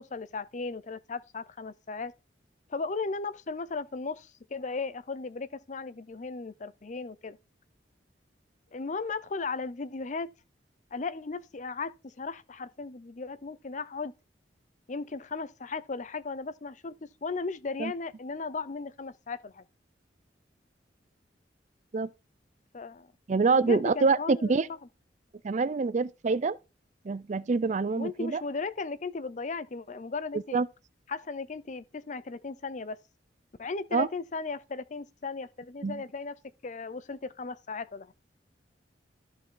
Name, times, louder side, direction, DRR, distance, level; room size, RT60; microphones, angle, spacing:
voice 1, 0.0-2.1 2.7-7.4 8.7-10.3 10.9-14.1 14.9-19.6 22.7-23.1 23.4-24.6 27.9-30.6 31.1-33.0 33.6-38.1, left 4 dB, 45° left, 0.6 m, -36 dB
voice 2, 23.3-24.7 25.4-26.6 27.0-28.4 30.5-30.7 33.9-34.1 35.8-36.0, right 4 dB, 40° right, 0.4 m, -26 dB
14.0 x 4.7 x 3.8 m
head